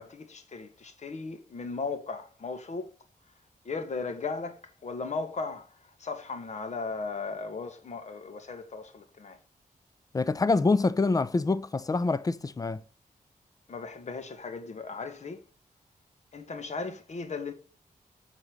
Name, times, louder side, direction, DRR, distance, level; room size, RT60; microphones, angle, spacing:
voice 1, 0.0-2.9 3.6-9.4 13.7-15.4 16.3-17.5, left 4 dB, 55° left, 1.2 m, -37 dB
voice 2, 10.1-12.8, left 3 dB, 25° left, 0.4 m, -26 dB
7.9 x 4.2 x 6.3 m
wide cardioid pair, 130°, 14 cm